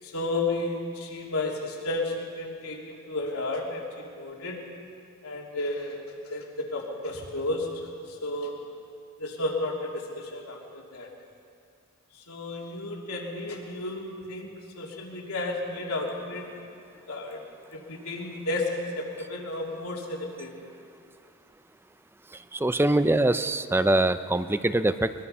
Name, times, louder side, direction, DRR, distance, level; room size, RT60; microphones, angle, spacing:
voice 1, 0.0-4.6 5.2-7.7 8.1-8.5 9.2-11.1 12.1-16.5 17.1-17.4 17.7-20.5, left 2 dB, 80° left, -1 dB, 3.1 m, -32 dB
voice 2, 22.3-25.1, right 1 dB, 10° right, 12 dB, 0.5 m, -23 dB
22.0 x 22.0 x 5.6 m, 2.5 s
head